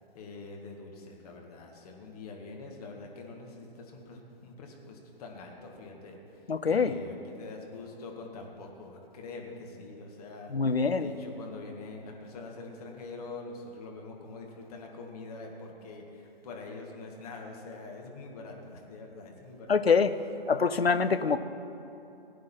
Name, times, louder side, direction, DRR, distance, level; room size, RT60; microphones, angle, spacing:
voice 1, 0.1-10.5 11.0-19.8, left 3 dB, 40° left, 1 dB, 1.9 m, -44 dB
voice 2, 6.5-6.9 10.5-11.1 19.7-20.1 20.5-21.4, left 5 dB, 85° left, 11 dB, 0.7 m, -25 dB
18.0 x 9.4 x 4.4 m, 2.8 s
figure-of-eight pair, 125°, 30 cm